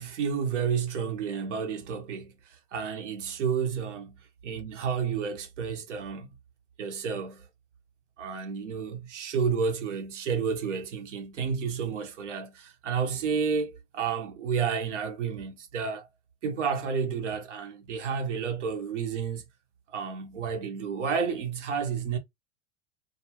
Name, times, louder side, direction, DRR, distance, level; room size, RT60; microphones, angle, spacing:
voice 1, 0.0-4.2 4.4-6.3 6.8-7.5 8.2-16.1 16.4-19.4 19.9-22.2, right 6 dB, 90° right, 1.0 m, -31 dB
2.8 x 2.3 x 2.8 m
hypercardioid pair, 105°, 35 cm